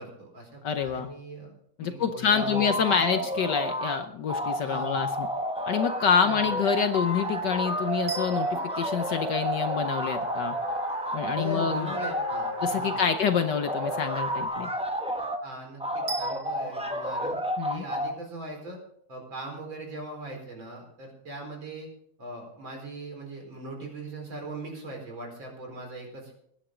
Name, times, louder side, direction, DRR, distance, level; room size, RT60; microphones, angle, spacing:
voice 1, 0.0-1.5 1.8-3.0 4.6-5.0 6.2-6.5 11.3-13.4 15.4-17.4 17.7-18.8 19.1-21.9 22.2-26.3, right 2 dB, 60° right, 1 dB, 5.1 m, -40 dB
voice 2, 0.6-1.1 1.8-5.3 5.7-10.6 11.1-11.9 12.6-14.7 17.6-17.8, left 7 dB, 65° left, 8 dB, 1.3 m, -27 dB
sound 1, 2.3-4.0 4.3-13.2 13.6-15.4 15.8-18.1, equal, 5° right, 0.5 m, -31 dB
sound 2, 5.7-14.5, right 3 dB, 80° right, 2.4 m, -41 dB
sound 3, 8.1-10.2 16.1-16.8, right 4 dB, 30° right, 0.9 m, -41 dB
20.5 x 10.0 x 3.8 m, 0.67 s
omnidirectional pair, 2.3 m